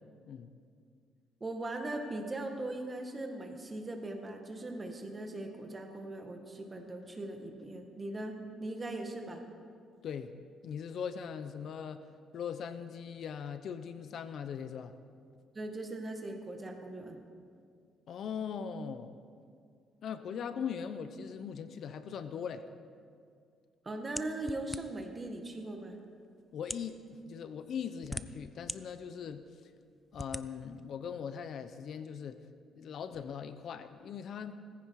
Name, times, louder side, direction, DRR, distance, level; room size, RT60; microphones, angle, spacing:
voice 1, 1.4-8.3 8.6-9.4 15.5-17.2 23.9-26.0, right 2 dB, 20° right, 3 dB, 1.9 m, -39 dB
voice 2, 10.6-12.1 12.3-14.9 18.1-19.1 20.0-22.7 26.5-29.7 30.1-32.4 32.7-34.6, left 7 dB, 55° left, 11 dB, 0.7 m, -40 dB
sound 1, 24.2-25.1 25.9-26.0 26.6-26.9 27.7-28.8 29.3-29.4 30.1-30.5, left 1 dB, 5° left, 0.4 m, -40 dB
18.5 x 15.5 x 4.8 m, 2.2 s
cardioid pair, 135°, 0 cm